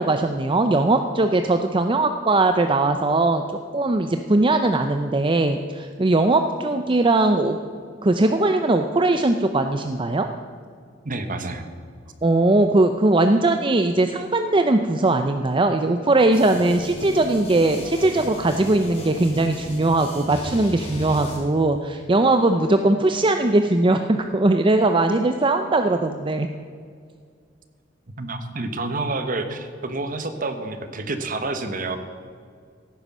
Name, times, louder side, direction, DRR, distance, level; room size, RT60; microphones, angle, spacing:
voice 1, 0.0-3.4 3.7-7.6 8.0-10.3 12.2-26.5, right 2 dB, 25° right, 7 dB, 0.6 m, -20 dB
voice 2, 11.0-11.7 28.2-32.0, right 2 dB, 45° right, 8 dB, 1.3 m, -28 dB
sound 1, 16.3-21.4, left 1 dB, 35° left, 4.8 m, -36 dB
16.5 x 9.6 x 6.1 m, 2.1 s
head